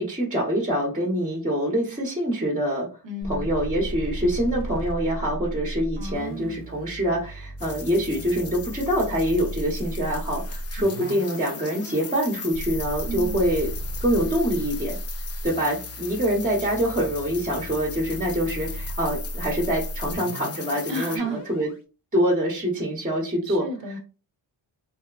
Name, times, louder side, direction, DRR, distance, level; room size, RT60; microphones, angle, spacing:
voice 1, 0.0-2.9 3.2-13.7 14.0-15.0 15.4-21.7 22.1-23.7, equal, 15° right, 0.8 m, -25 dB
voice 2, 3.0-3.5 6.0-6.6 10.8-11.2 13.1-13.4 20.9-21.4 23.5-24.0, right 1 dB, 60° right, 0.8 m, -33 dB
sound 1, 3.2-21.8, equal, 70° left, 0.9 m, -35 dB
sound 2, 7.6-21.2, left 6 dB, 35° left, 0.4 m, -39 dB
2.8 x 2.1 x 2.3 m
cardioid pair, 70°, 50 cm